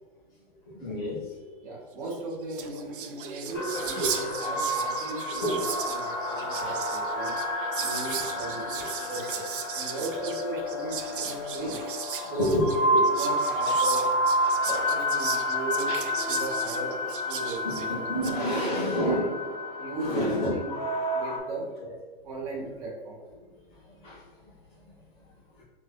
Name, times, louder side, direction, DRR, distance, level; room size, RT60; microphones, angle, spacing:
voice 1, 0.7-1.6 3.2-4.1 5.4-5.6 11.1-11.2 11.6-11.7 12.4-12.7 17.6-19.3 20.0-20.5 21.8-21.9 23.9-24.5 25.6-25.7, equal, 5° left, -9 dB, 0.4 m, -30 dB
voice 2, 1.6-7.3 7.7-8.8 9.1-12.7 13.1-14.0 14.7-15.9 16.3-18.8 19.0-19.3 19.8-20.7 21.1-21.7 22.2-23.2, right 2 dB, 35° right, -4 dB, 1.2 m, -36 dB
Whispering, 2.2-2.3 2.4-18.4, right 8 dB, 55° right, 0.5 m, -37 dB
sound 1, 3.5-21.4, equal, 30° left, 0.7 m, -30 dB
4.5 x 2.5 x 4.6 m, 1.4 s
hypercardioid pair, 175°, 31 cm